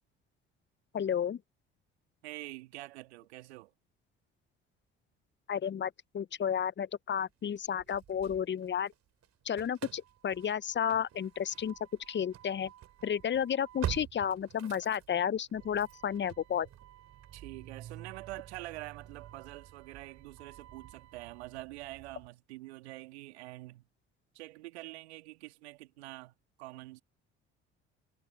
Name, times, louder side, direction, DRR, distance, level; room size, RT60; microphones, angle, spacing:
voice 1, 0.9-1.4 5.5-8.9 9.5-11.7 12.1-12.7 13.0-16.7, left 8 dB, 35° left, 0.9 m, -32 dB
voice 2, 2.2-3.7 17.3-23.9 24.3-27.0, right 19 dB, 80° right, 2.3 m, -46 dB
Engine starting / Slam, 7.6-8.9 9.2-22.3, right 11 dB, 55° right, 4.5 m, -47 dB
hypercardioid pair, 55°, 33 cm